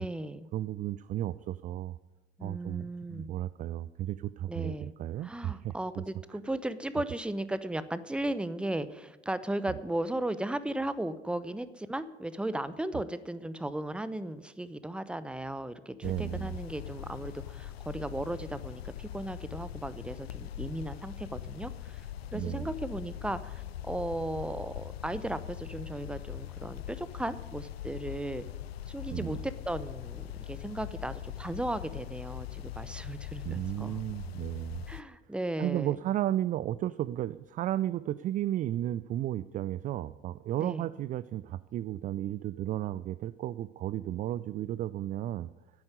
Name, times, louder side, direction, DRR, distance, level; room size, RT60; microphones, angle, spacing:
voice 1, 0.0-0.4 2.4-3.3 4.5-4.9 5.2-22.0 22.3-28.4 28.9-34.0 34.9-36.0 40.6-40.9, right 1 dB, 5° right, 14 dB, 0.8 m, -36 dB
voice 2, 0.5-2.0 2.4-6.0 16.0-16.6 22.3-22.7 29.1-29.4 33.4-34.9 35.6-45.5, right 13 dB, 25° right, 16 dB, 0.4 m, -34 dB
sound 1, 16.0-35.0, left 11 dB, 75° left, 0.5 m, -42 dB
10.5 x 9.7 x 9.4 m, 1.1 s
figure-of-eight pair, 65°, 31 cm